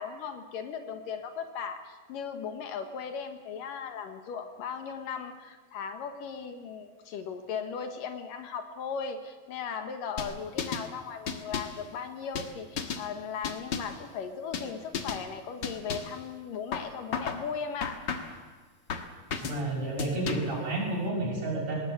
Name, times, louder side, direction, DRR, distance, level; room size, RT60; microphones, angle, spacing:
voice 1, 0.0-18.0, left 6 dB, 75° left, 7 dB, 3.0 m, -37 dB
sound 1, 10.2-10.9 11.3-11.8 12.4-13.1 13.4-14.0 14.5-14.7 14.9-15.2 15.6-16.2 16.7-17.4 17.8-18.4 18.9-19.6 20.0-20.6, left 6 dB, 50° left, 1.4 m, -34 dB
voice 2, 19.4-21.8, right 2 dB, 50° right, -2 dB, 7.9 m, -30 dB
19.5 x 19.0 x 8.7 m, 1.4 s
omnidirectional pair, 4.0 m